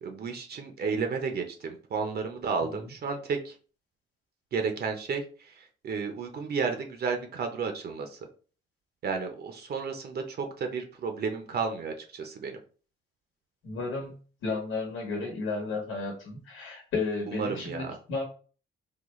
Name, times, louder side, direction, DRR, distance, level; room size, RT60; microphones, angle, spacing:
voice 1, 0.0-3.5 4.5-8.2 9.0-12.6 17.3-18.0, right 5 dB, 55° right, 5 dB, 0.7 m, -32 dB
voice 2, 13.6-14.1 14.4-18.2, left 3 dB, 80° left, 0 dB, 1.1 m, -33 dB
3.9 x 2.2 x 3.1 m, 0.39 s
cardioid pair, 90°, 20 cm